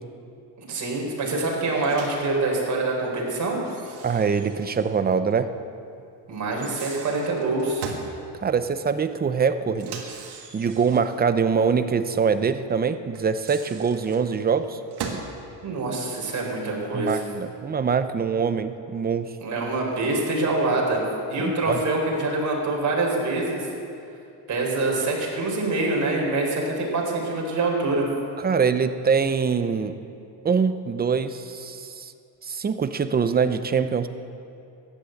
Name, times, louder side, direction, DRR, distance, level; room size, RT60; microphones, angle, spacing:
voice 1, 0.6-3.6 6.3-7.8 15.6-17.2 19.4-23.7 24.5-28.1, right 2 dB, 40° right, -1 dB, 4.2 m, -25 dB
Microwave oven, 1.8-2.3 3.6-5.0 5.3-5.4 6.5-8.1 9.7-11.2 13.2-15.3, right 6 dB, 60° right, 2.1 m, -39 dB
voice 2, 4.0-5.5 8.4-10.0 10.5-14.8 16.9-19.3 21.4-21.8 28.4-30.0 30.4-32.1 32.4-34.1, right 6 dB, 20° right, 10 dB, 0.7 m, -24 dB
15.0 x 10.5 x 7.8 m, 2.6 s
cardioid pair, 125°, 44 cm